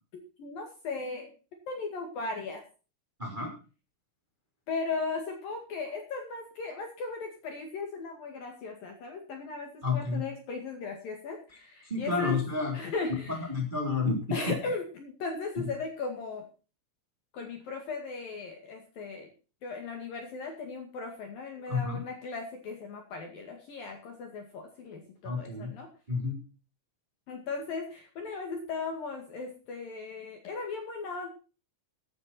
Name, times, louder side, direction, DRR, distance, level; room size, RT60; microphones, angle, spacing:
voice 1, 0.4-1.3 1.7-2.6 4.7-12.4 12.7-13.4 14.3-16.4 17.3-19.3 19.6-25.9 27.3-31.3, left 4 dB, 55° left, 3 dB, 3.3 m, -37 dB
voice 2, 3.2-3.5 9.8-10.2 11.8-12.8 13.1-14.2 14.5-14.6 15.6-15.7 21.7-22.0 25.2-25.7 26.1-26.4, left 4 dB, 10° right, 1 dB, 3.0 m, -30 dB
15.5 x 10.5 x 4.3 m, 0.35 s
omnidirectional pair, 5.9 m